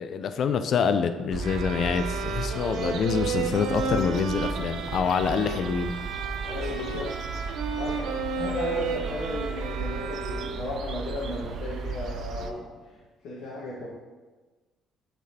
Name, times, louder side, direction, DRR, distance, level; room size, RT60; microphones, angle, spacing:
voice 1, 0.0-5.9, left 6 dB, 50° left, 10 dB, 0.4 m, -26 dB
sound 1, 1.3-12.5, right 4 dB, 55° right, 0.3 m, -35 dB
sound 2, 1.4-10.9, right 4 dB, 75° right, 0.7 m, -33 dB
sound 3, 6.0-13.0, equal, 5° left, 1.3 m, -47 dB
voice 2, 6.4-7.2 7.7-8.1 8.3-13.0 13.2-13.9, left 2 dB, 75° left, -7 dB, 1.3 m, -35 dB
9.3 x 4.1 x 2.8 m, 1.3 s
cardioid pair, 145°, 0 cm